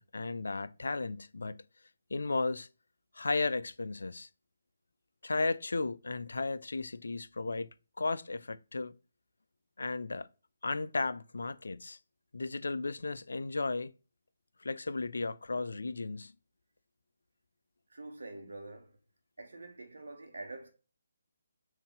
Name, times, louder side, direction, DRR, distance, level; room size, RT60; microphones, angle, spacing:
voice 1, 0.0-1.6 2.1-2.7 3.2-4.3 5.2-7.7 8.0-9.0 9.8-10.3 10.6-12.0 12.3-13.9 14.6-16.3, left 3 dB, 70° left, 0.3 m, -34 dB
voice 2, 17.9-19.0 19.4-20.7, right 2 dB, 70° right, 1.0 m, -46 dB
5.4 x 2.6 x 3.6 m
figure-of-eight pair, 145°, 0 cm